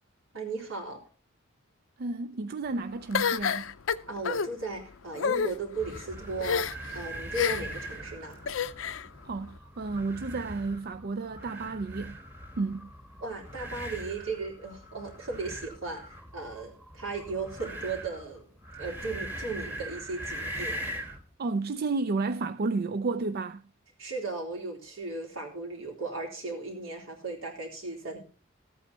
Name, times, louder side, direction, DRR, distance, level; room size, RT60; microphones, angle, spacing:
voice 1, 0.3-1.0 4.1-6.7 6.9-8.4 13.2-18.4 18.8-20.8 24.0-28.2, right 3 dB, 80° right, 3.8 m, -36 dB
voice 2, 2.0-3.7 9.2-12.2 12.6-12.9 21.4-23.6, right 3 dB, 50° right, 0.4 m, -31 dB
sound 1, 3.1-4.5 5.1-5.5 6.4-6.9 7.3-7.8 8.5-9.0, left 6 dB, 75° left, 0.6 m, -28 dB
sound 2, 5.8-21.3, right 1 dB, 10° right, 1.3 m, -41 dB
14.0 x 8.6 x 4.2 m
head